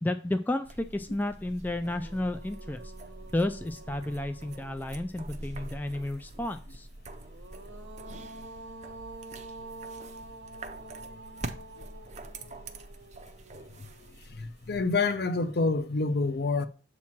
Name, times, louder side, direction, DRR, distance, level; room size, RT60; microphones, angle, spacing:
voice 1, 0.0-2.9 3.3-6.9, left 1 dB, 10° left, 0.3 m, -32 dB
sound 1, 0.6-15.2, right 2 dB, 40° right, 0.6 m, -45 dB
sound 2, 1.3-1.4 1.8-5.4 7.1-14.3, right 2 dB, 90° right, 0.9 m, -48 dB
voice 2, 13.8-16.7, left 3 dB, 60° left, 0.6 m, -28 dB
7.3 x 3.0 x 5.8 m
head